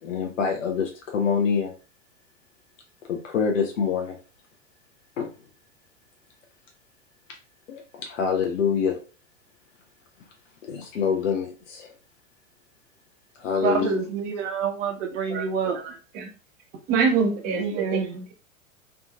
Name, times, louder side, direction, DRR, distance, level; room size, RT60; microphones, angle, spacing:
voice 1, 0.0-1.7 3.0-4.2 5.2-5.3 7.7-9.0 10.6-11.9 13.3-14.0, left 6 dB, 70° left, 0.7 m, -26 dB
voice 2, 13.6-15.8 17.5-18.2, right 7 dB, 60° right, 0.7 m, -27 dB
voice 3, 15.3-15.8 16.1-16.3 16.9-18.2, right 5 dB, 25° right, 0.5 m, -25 dB
3.7 x 2.4 x 2.2 m
figure-of-eight pair, 90°, 41 cm